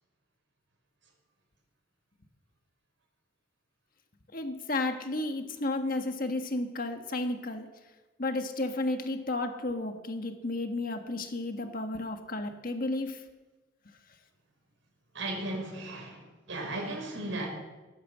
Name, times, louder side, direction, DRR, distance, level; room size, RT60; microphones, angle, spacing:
voice 1, 4.3-7.7 8.2-13.2, left 2 dB, 50° left, 6 dB, 1.5 m, -32 dB
voice 2, 15.1-17.5, right 2 dB, 85° right, 1 dB, 5.2 m, -36 dB
19.0 x 9.5 x 7.4 m, 1.2 s
head